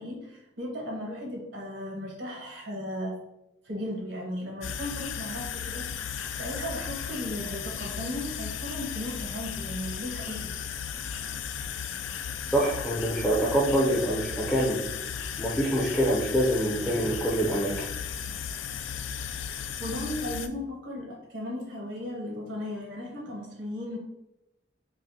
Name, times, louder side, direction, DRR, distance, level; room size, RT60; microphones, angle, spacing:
voice 1, 0.0-3.2 3.6-10.5 19.8-24.0, left 1 dB, 80° right, -2 dB, 1.1 m, -36 dB
sound 1, 4.6-20.5, left 7 dB, 80° left, 0.3 m, -35 dB
voice 2, 12.5-14.8 15.4-17.9, right 1 dB, 5° left, -4 dB, 0.5 m, -25 dB
4.8 x 2.1 x 2.7 m, 0.90 s
head